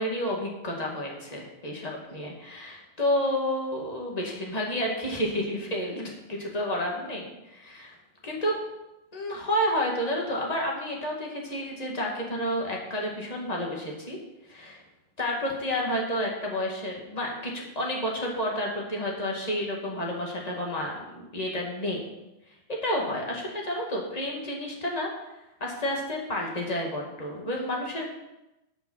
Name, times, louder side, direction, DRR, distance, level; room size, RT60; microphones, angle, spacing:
voice 1, 0.0-7.9 8.2-8.6 9.1-14.2 14.4-14.8 15.2-22.1 22.7-25.1 25.6-28.1, equal, 15° left, -1 dB, 1.6 m, -30 dB
11.0 x 5.7 x 7.4 m, 0.95 s
omnidirectional pair, 3.6 m